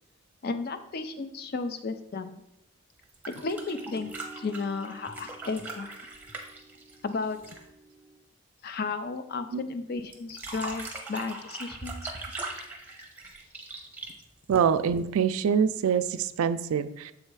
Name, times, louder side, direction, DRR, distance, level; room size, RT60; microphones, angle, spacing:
voice 1, 0.4-2.4 3.3-6.0 7.0-7.4 8.6-12.1, left 4 dB, 45° left, 9 dB, 0.4 m, -34 dB
sound 1, 3.0-7.7 10.1-15.0 16.4-16.5, right 2 dB, 10° right, 0.8 m, -40 dB
sound 2, 3.4-8.2, right 2 dB, 70° left, 1.8 m, -49 dB
voice 2, 14.5-17.1, right 7 dB, 80° right, 11 dB, 0.4 m, -25 dB
7.3 x 3.2 x 4.6 m, 0.81 s
head